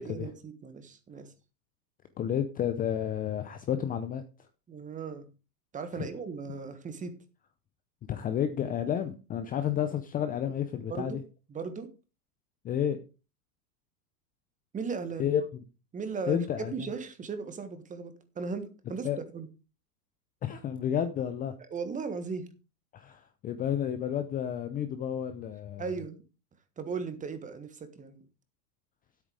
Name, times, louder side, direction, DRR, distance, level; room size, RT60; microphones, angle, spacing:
voice 1, 0.0-1.3 4.7-5.3 5.7-7.1 10.9-11.2 11.5-11.9 14.7-15.3 15.9-19.1 19.3-19.5 21.7-22.5 25.8-26.2 26.8-28.2, right 5 dB, 15° right, 1.4 m, -37 dB
voice 2, 2.2-4.2 6.0-6.1 8.1-11.2 12.6-13.0 15.2-15.4 16.3-16.9 19.0-19.2 20.4-21.5 22.9-25.9, left 9 dB, 20° left, 0.7 m, -31 dB
9.9 x 8.4 x 5.0 m
hypercardioid pair, 135°, 48 cm